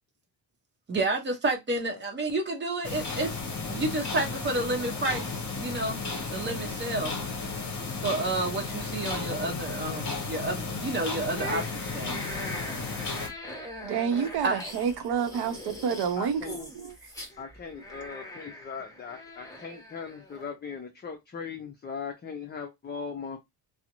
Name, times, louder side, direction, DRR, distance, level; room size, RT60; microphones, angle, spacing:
voice 1, 0.9-6.0 6.3-7.2 8.0-12.3 14.4-14.6, right 2 dB, 25° right, 0.8 m, -30 dB
sound 1, 2.8-13.3, left 3 dB, 40° left, 0.8 m, -34 dB
sound 2, 11.3-20.5, left 1 dB, 10° left, 1.0 m, -41 dB
voice 2, 13.8-16.9, right 7 dB, 60° right, 0.7 m, -29 dB
voice 3, 16.2-16.6 17.4-23.4, left 5 dB, 25° left, 0.5 m, -39 dB
2.4 x 2.0 x 2.9 m
cardioid pair, 115°, 44 cm